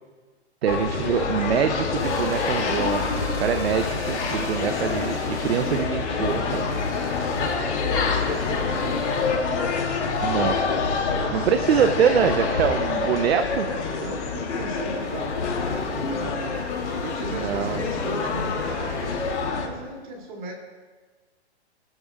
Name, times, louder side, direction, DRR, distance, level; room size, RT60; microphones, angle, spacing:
voice 1, 0.6-6.7 10.2-10.6 11.3-13.7 17.3-17.8, right 8 dB, 65° right, 8 dB, 0.7 m, -24 dB
sound 1, 0.7-19.7, left 4 dB, 90° left, 2.7 m, -26 dB
sound 2, 0.8-20.0, left 2 dB, 10° left, 2.2 m, -39 dB
voice 2, 7.3-9.4 11.3-11.5 11.7-11.9 14.0-16.4 17.0-20.5, right 1 dB, 45° right, 0 dB, 2.9 m, -37 dB
26.5 x 12.0 x 2.4 m, 1.3 s
hypercardioid pair, 175°, 34 cm